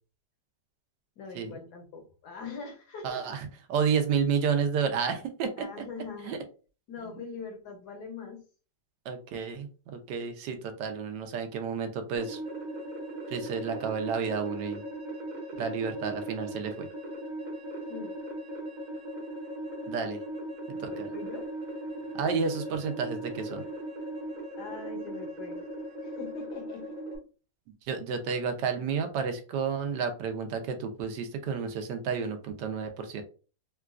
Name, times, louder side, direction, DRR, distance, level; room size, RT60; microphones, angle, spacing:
voice 1, 1.2-3.4 5.6-6.4 6.9-8.4 17.9-18.2 20.7-21.5 24.6-25.6 26.0-27.0, left 4 dB, 70° left, 3 dB, 1.3 m, -42 dB
voice 2, 3.0-5.5 6.2-6.4 7.0-7.1 9.0-12.4 13.3-14.8 15.6-16.9 19.9-20.2 20.8-21.1 22.1-23.6 27.8-33.2, right 6 dB, 75° right, 6 dB, 1.2 m, -31 dB
sound 1, 12.2-27.2, right 1 dB, 40° right, 0.6 m, -38 dB
3.8 x 2.3 x 2.4 m, 0.35 s
omnidirectional pair, 1.9 m